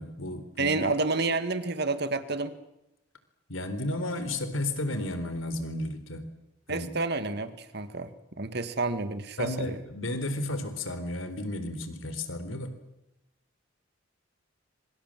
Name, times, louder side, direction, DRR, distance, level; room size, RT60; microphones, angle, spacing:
voice 1, 0.0-0.8 3.5-6.3 6.7-6.9 9.4-12.7, left 1 dB, 85° left, 10 dB, 4.1 m, -33 dB
voice 2, 0.6-2.6 6.7-8.1 8.4-9.8, right 3 dB, 55° right, 11 dB, 1.9 m, -29 dB
26.0 x 25.0 x 7.7 m, 0.88 s
head